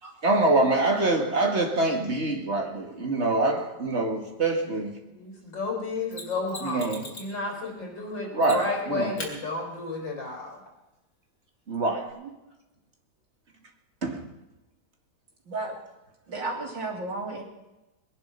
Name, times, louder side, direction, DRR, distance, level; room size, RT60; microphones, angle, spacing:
voice 1, 0.2-5.0 6.6-7.0 8.3-9.2 11.7-12.2 14.0-14.2, right 2 dB, 40° right, 2 dB, 2.3 m, -25 dB
voice 2, 5.1-10.6, left 3 dB, 80° left, 0 dB, 4.9 m, -32 dB
Mechanisms, 6.1-7.4 8.4-8.8 9.2-9.3 12.1-12.2, left 2 dB, 50° left, 3.7 m, -39 dB
voice 3, 16.3-17.4, right 2 dB, 90° right, 0 dB, 3.8 m, -33 dB
21.0 x 11.0 x 5.8 m, 0.99 s
omnidirectional pair, 2.0 m